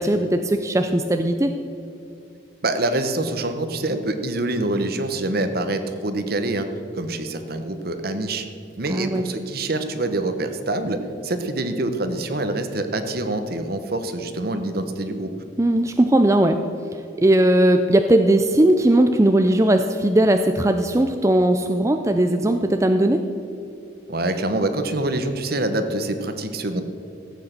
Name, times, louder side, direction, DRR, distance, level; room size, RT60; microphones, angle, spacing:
voice 1, 0.0-1.5 8.9-9.2 15.6-16.6 17.2-23.2, right 1 dB, 15° right, 6 dB, 0.5 m, -18 dB
voice 2, 2.6-6.7 6.9-8.5 8.8-15.3 24.1-26.8, right 2 dB, 55° right, 8 dB, 1.1 m, -25 dB
15.0 x 8.3 x 6.7 m, 2.6 s
head